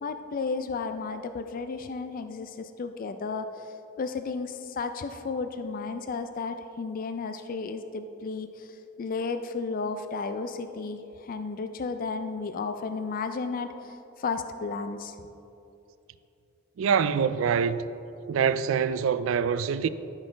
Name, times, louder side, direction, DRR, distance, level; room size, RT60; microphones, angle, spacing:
voice 1, 0.0-3.7 4.0-15.2, left 4 dB, 45° left, 0.4 m, -33 dB
voice 2, 16.8-17.8 18.3-19.9, right 7 dB, 90° right, 0.3 m, -25 dB
13.5 x 6.0 x 3.3 m
head